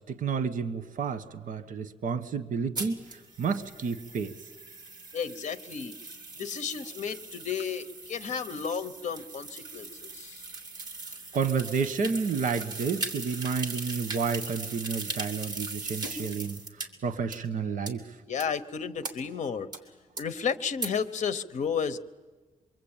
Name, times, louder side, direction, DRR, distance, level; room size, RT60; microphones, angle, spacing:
voice 1, 0.0-4.3 11.3-16.6 17.0-18.0, right 5 dB, 70° right, 12 dB, 1.2 m, -30 dB
sound 1, 2.7-16.9 17.3-17.4 17.9-18.0 18.4-18.5 19.0-19.1 19.7-19.8 20.2-20.3 20.8-20.9, right 3 dB, 30° right, 3.0 m, -39 dB
voice 2, 5.1-6.0 6.4-10.5 18.3-19.7 20.2-22.0, left 6 dB, 60° left, 11 dB, 1.0 m, -32 dB
26.5 x 23.5 x 8.9 m, 1.3 s
wide cardioid pair, 175°, 14 cm